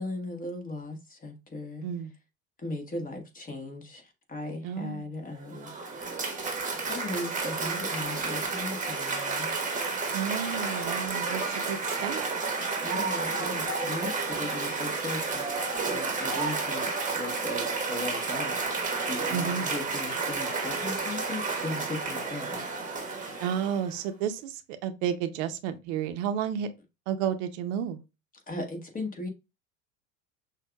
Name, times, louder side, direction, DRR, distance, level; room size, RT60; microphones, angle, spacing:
voice 1, 0.0-1.8 2.6-5.7 6.9-9.5 12.8-15.4 15.8-18.8 19.1-22.6 28.5-29.3, left 2 dB, 20° left, 1.3 m, -37 dB
voice 2, 4.6-5.1 10.1-12.3 19.3-19.7 23.4-26.7 27.1-28.0, right 8 dB, 60° right, 0.8 m, -31 dB
Cheering / Applause, 5.4-24.0, right 4 dB, 20° right, 1.2 m, -31 dB
6.1 x 2.4 x 2.3 m
hypercardioid pair, 75°, 41 cm